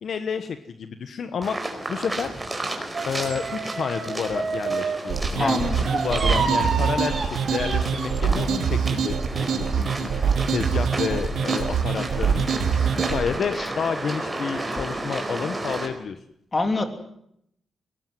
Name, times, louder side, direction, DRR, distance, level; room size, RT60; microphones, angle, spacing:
voice 1, 0.0-2.3 3.0-12.5 12.9-16.2, left 6 dB, 60° left, 9 dB, 1.3 m, -30 dB
sound 1, 1.4-15.9, right 2 dB, 15° right, 4.6 m, -33 dB
sound 2, 2.9-5.1 5.4-8.2, right 4 dB, 40° right, 3.5 m, -29 dB
sound 3, 5.1-13.2, right 6 dB, 80° right, 3.0 m, -24 dB
voice 2, 5.4-5.9 6.2-6.5 13.6-13.7 16.5-16.8, left 2 dB, 25° left, 6 dB, 3.2 m, -26 dB
23.0 x 19.0 x 9.4 m, 0.75 s
cardioid pair, 120°, 0 cm